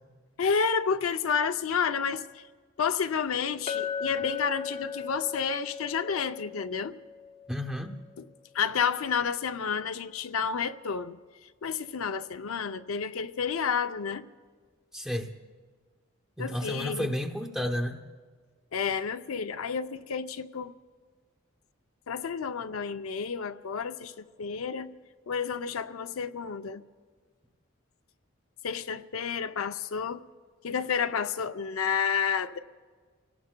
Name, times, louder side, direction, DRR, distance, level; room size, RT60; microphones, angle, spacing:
voice 1, 0.4-2.4 2.8-7.0 8.5-11.2 11.6-14.2 16.4-17.1 18.7-20.7 22.1-24.9 25.3-26.8 28.6-30.2 30.6-32.6, left 6 dB, 80° left, 10 dB, 0.5 m, -30 dB
Chink clink, 3.7-8.1, left 7 dB, 30° left, 0.6 m, -37 dB
voice 2, 7.5-8.0 14.9-15.3 16.4-18.0, left 1 dB, 5° right, 2 dB, 0.8 m, -31 dB
30.0 x 18.0 x 2.2 m, 1.5 s
head